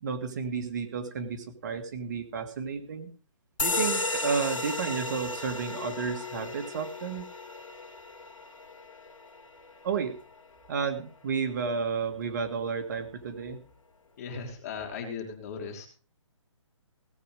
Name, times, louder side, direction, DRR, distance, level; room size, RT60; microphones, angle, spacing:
voice 1, 0.0-3.1 3.6-7.3 9.8-10.2 10.7-13.6, right 5 dB, 35° right, 6 dB, 1.9 m, -32 dB
sound 1, 3.6-10.7, left 2 dB, 80° left, 2.1 m, -34 dB
Keyboard (musical), 5.8-8.6, left 10 dB, 10° left, 2.2 m, -46 dB
voice 2, 14.2-15.9, left 5 dB, 30° left, 3 dB, 3.6 m, -37 dB
17.5 x 9.1 x 5.0 m, 0.37 s
hypercardioid pair, 165°, 16 cm